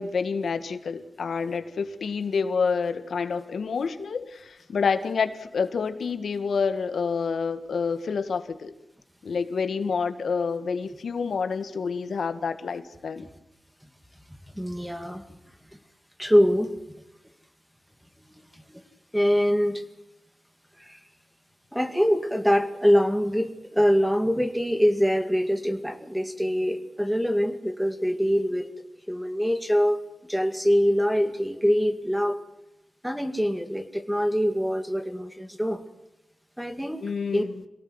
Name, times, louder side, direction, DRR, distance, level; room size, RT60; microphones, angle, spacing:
voice 1, 0.0-8.7 9.2-13.3 37.0-37.6, left 5 dB, 80° left, 10 dB, 1.8 m, -28 dB
voice 2, 14.6-15.2 16.2-16.7 19.1-19.8 20.8-21.0 21.7-28.7 29.1-30.0 30.3-32.4 33.0-35.8 36.6-37.4, equal, ahead, 8 dB, 2.2 m, -24 dB
27.0 x 18.0 x 8.1 m, 0.90 s
wide cardioid pair, 135°, 0 cm